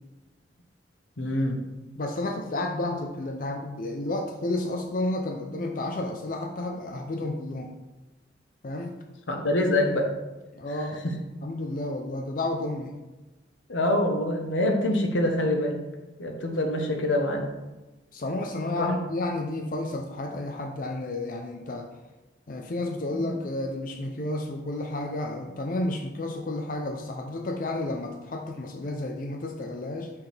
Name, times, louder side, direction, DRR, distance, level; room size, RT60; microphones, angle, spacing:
voice 1, 1.2-1.6 9.3-10.1 11.0-11.1 13.7-15.8 16.2-17.4 18.8-18.9 23.1-23.3, left 1 dB, 90° left, 2 dB, 1.1 m, -25 dB
voice 2, 2.0-7.7 8.6-9.0 10.5-11.0 11.4-12.9 18.1-21.9 22.5-30.1, left 2 dB, 45° left, 3 dB, 0.5 m, -31 dB
6.0 x 5.8 x 3.4 m, 1.1 s
head